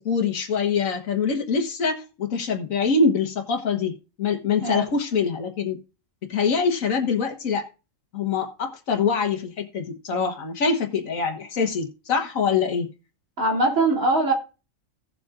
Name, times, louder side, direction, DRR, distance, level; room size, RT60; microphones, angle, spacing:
voice 1, 0.0-5.8 6.3-7.6 8.1-12.9, left 5 dB, 90° left, 4 dB, 1.6 m, -24 dB
voice 2, 13.4-14.3, right 2 dB, 80° right, -2 dB, 3.2 m, -21 dB
17.0 x 7.2 x 2.5 m, 0.31 s
omnidirectional pair, 1.4 m